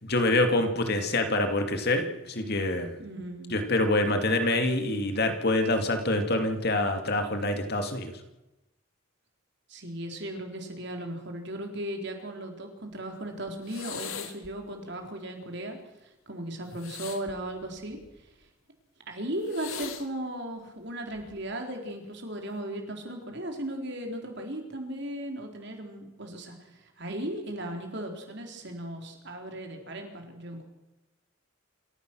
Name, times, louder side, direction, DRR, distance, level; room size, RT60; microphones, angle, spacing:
voice 1, 0.0-3.0 3.5-8.1, left 2 dB, 50° left, 6 dB, 2.4 m, -26 dB
voice 2, 3.0-3.5 9.7-15.8 16.3-18.0 19.1-30.6, right 1 dB, 55° right, 3 dB, 4.1 m, -36 dB
sound 1, 13.6-14.5 16.7-18.2 19.4-20.1 21.1-21.5, left 6 dB, 80° left, 2.1 m, -40 dB
27.5 x 15.5 x 6.3 m, 0.98 s
head